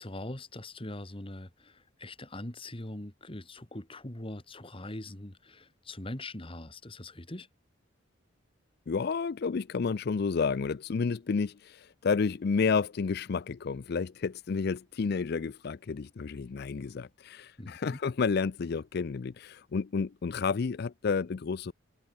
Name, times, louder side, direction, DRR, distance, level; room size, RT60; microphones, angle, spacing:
voice 1, 0.0-7.5 17.6-18.0, left 1 dB, 25° left, 2.0 m, -42 dB
voice 2, 8.9-21.7, left 5 dB, 55° left, 0.4 m, -30 dB
head